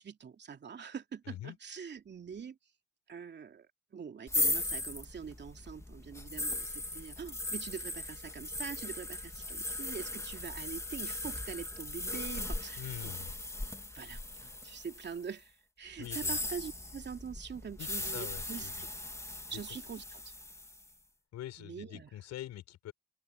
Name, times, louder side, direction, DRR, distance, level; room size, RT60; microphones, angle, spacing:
voice 1, 0.0-2.6 3.1-3.7 3.9-13.1 13.9-18.9 19.5-20.3 21.6-22.1, right 6 dB, 35° right, 2.8 m, -44 dB
voice 2, 1.3-1.6 12.8-13.3 16.0-16.4 17.8-18.8 19.5-19.6 21.3-22.9, left 13 dB, 65° left, 6.1 m, -44 dB
sound 1, 4.3-15.2 16.0-20.8, left 2 dB, 10° left, 2.3 m, -38 dB
open air
supercardioid pair, 75°, 30 cm